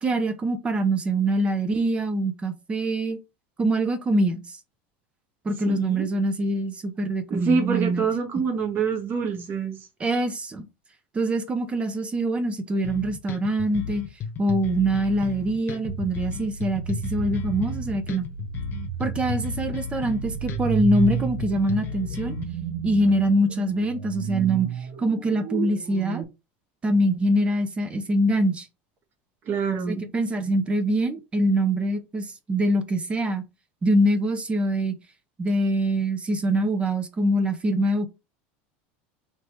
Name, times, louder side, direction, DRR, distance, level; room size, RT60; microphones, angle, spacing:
voice 1, 0.0-3.2 3.6-4.6 5.4-8.0 10.0-10.7 11.1-14.0 14.4-18.3 19.0-22.4 22.8-24.7 25.0-26.2 26.8-28.7 29.9-33.4 33.8-35.0 35.4-38.1, right 1 dB, 20° right, 0.6 m, -24 dB
voice 2, 5.6-6.1 7.3-9.8 29.5-30.0, right 5 dB, 35° right, 1.2 m, -26 dB
sound 1, 12.8-22.4, left 7 dB, 35° left, 1.0 m, -34 dB
sound 2, 15.9-26.2, right 8 dB, 70° right, 1.0 m, -32 dB
3.3 x 3.0 x 4.4 m
supercardioid pair, 135°, 6 cm